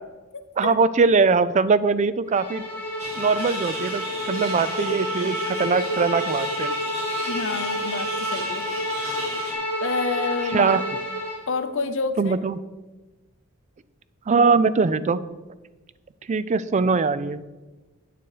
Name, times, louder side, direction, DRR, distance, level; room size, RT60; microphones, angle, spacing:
voice 1, 0.6-2.7 3.2-6.7 10.5-10.9 12.2-12.6 14.3-15.2 16.3-17.4, right 4 dB, 35° right, 15 dB, 0.4 m, -21 dB
Bowed string instrument, 2.3-11.4, equal, 10° left, 1.7 m, -29 dB
sound 1, 3.0-9.5, right 2 dB, 70° right, 2.3 m, -36 dB
voice 2, 7.3-8.7 9.8-10.7 11.5-12.4, left 4 dB, 60° left, 10 dB, 0.7 m, -28 dB
8.9 x 6.9 x 4.9 m, 1.2 s
head